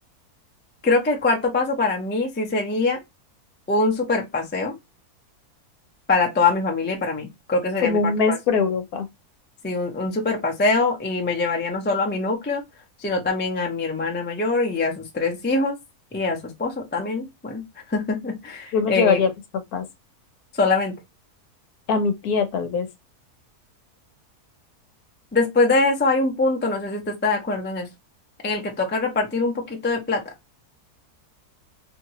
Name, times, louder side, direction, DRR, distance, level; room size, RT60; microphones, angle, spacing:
voice 1, 0.8-3.0 3.7-4.7 6.1-8.4 9.6-12.6 13.0-15.8 16.1-17.6 17.9-19.2 20.5-20.9 25.3-27.9 28.4-30.2, left 3 dB, 15° left, 0.3 m, -23 dB
voice 2, 7.8-9.1 18.7-19.3 19.7-19.8 21.9-22.9, left 5 dB, 70° left, 1.2 m, -22 dB
2.9 x 2.8 x 2.8 m
omnidirectional pair, 1.7 m